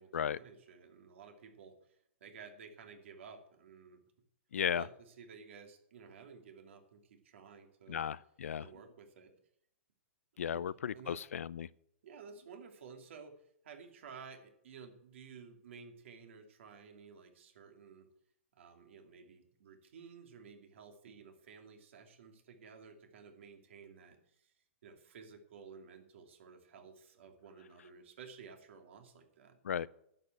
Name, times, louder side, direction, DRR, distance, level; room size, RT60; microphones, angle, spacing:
voice 1, 0.0-2.0 2.2-4.0 4.7-8.0 8.5-9.3 10.5-11.2 12.0-13.4 13.6-18.1 18.5-24.5 24.8-29.6, right 6 dB, 60° right, 2.7 m, -54 dB
voice 2, 4.5-4.9 7.9-8.7 10.4-11.7 29.6-29.9, left 8 dB, 90° left, 0.5 m, -35 dB
10.5 x 7.7 x 8.0 m
hypercardioid pair, 160°, 7 cm